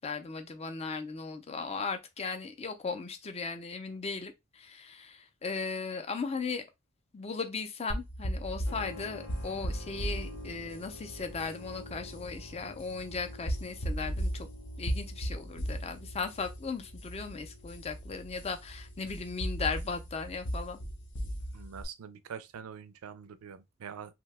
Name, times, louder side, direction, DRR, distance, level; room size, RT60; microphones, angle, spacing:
voice 1, 0.0-6.6 7.1-14.5 14.8-20.8, left 4 dB, 30° left, 0.5 m, -37 dB
sound 1, 7.9-21.8, equal, 55° left, 0.8 m, -37 dB
Keyboard (musical), 8.6-21.1, left 2 dB, 80° left, 1.0 m, -51 dB
voice 2, 21.5-24.1, right 7 dB, 90° right, 0.4 m, -45 dB
2.8 x 2.2 x 3.2 m
head